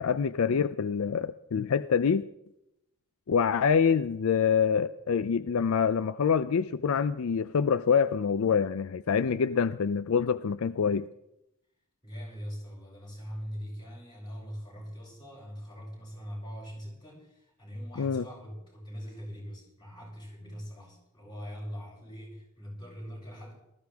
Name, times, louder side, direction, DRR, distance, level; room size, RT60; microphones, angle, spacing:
voice 1, 0.0-2.2 3.3-11.1 18.0-18.2, left 6 dB, 70° left, 14 dB, 0.4 m, -26 dB
voice 2, 12.0-23.5, equal, 20° left, -3 dB, 6.6 m, -42 dB
19.0 x 14.0 x 3.5 m, 0.84 s
head